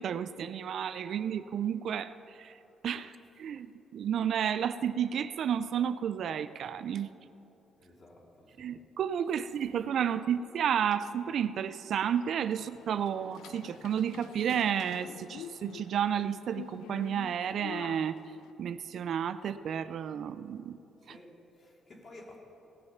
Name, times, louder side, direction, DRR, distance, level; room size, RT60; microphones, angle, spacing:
voice 1, 0.0-2.1 2.4-2.5 2.8-3.1 3.4-3.7 3.9-7.1 8.6-18.2 18.6-20.8, right 8 dB, 65° right, 13 dB, 0.4 m, -31 dB
voice 2, 7.8-8.8 9.6-9.7 21.0-22.4, left 2 dB, 40° left, -1 dB, 2.8 m, -54 dB
sound 1, 12.4-18.5, left 10 dB, 85° left, 0.3 m, -47 dB
18.5 x 6.5 x 5.8 m, 3.0 s
cardioid pair, 90°, 0 cm